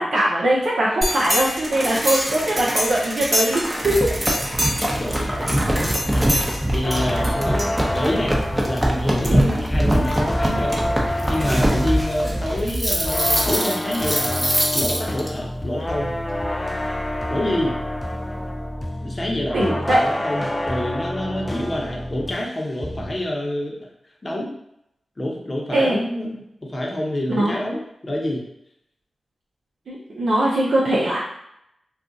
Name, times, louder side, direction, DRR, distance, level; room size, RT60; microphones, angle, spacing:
voice 1, 0.0-4.1 9.3-9.6 19.5-20.0 25.7-26.0 27.3-27.6 29.9-31.2, right 1 dB, 80° right, -5 dB, 0.5 m, -21 dB
sound 1, 1.0-15.3, equal, 15° right, 0.8 m, -23 dB
voice 2, 3.8-4.1 4.9-6.3 6.7-8.4 8.7-10.8 11.3-16.2 17.3-17.7 19.0-23.7 24.2-24.5 25.2-28.4, left 1 dB, 40° left, -1 dB, 0.8 m, -27 dB
sound 2, 6.8-22.5 22.8-23.3, left 1 dB, 20° left, 0.3 m, -28 dB
2.4 x 2.3 x 3.9 m, 0.78 s
cardioid pair, 45°, 0 cm